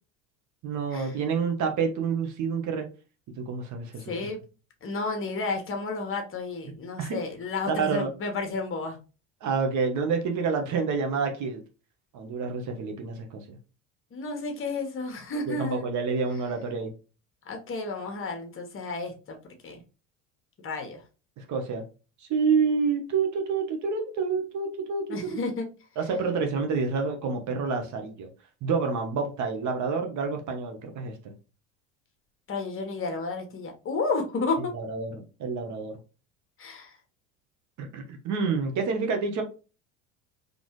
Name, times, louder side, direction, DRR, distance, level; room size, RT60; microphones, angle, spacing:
voice 1, 0.6-2.9 3.4-4.3 7.0-7.2 7.7-8.1 9.4-11.6 12.1-13.6 15.5-16.9 21.4-21.8 22.2-25.3 26.0-28.3 28.6-31.3 34.6-36.0 37.8-39.4, right 5 dB, 50° right, 1.2 m, -28 dB
voice 2, 4.1-4.4 4.8-9.0 14.1-15.9 17.4-19.4 19.6-19.8 20.6-21.0 25.1-25.7 32.5-34.7 36.6-37.0, left 3 dB, 35° left, 1.4 m, -32 dB
4.4 x 3.4 x 3.1 m
supercardioid pair, 100°, 37 cm